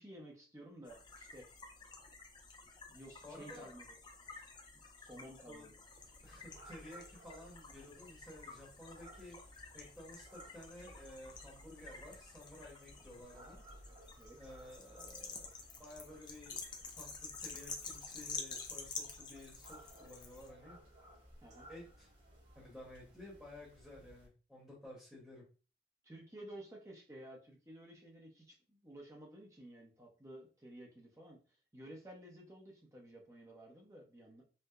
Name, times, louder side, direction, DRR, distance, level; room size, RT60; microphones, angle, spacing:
voice 1, 0.0-1.5 2.9-3.9 4.4-4.5 4.7-5.8 14.2-14.4 21.4-21.7 26.0-31.4 31.7-34.4, right 1 dB, 15° right, -1 dB, 0.7 m, -53 dB
sound 1, 0.9-20.5, left 4 dB, 25° left, 0.4 m, -50 dB
voice 2, 3.2-3.7 5.5-5.6 6.2-9.4 9.7-13.6 14.4-15.5 15.8-16.6 17.0-20.8 21.7-22.1 22.5-25.4, left 1 dB, ahead, -5 dB, 1.1 m, -53 dB
sound 2, 5.9-24.3, right 1 dB, 85° right, 1.6 m, -60 dB
4.5 x 2.1 x 2.4 m, 0.36 s
head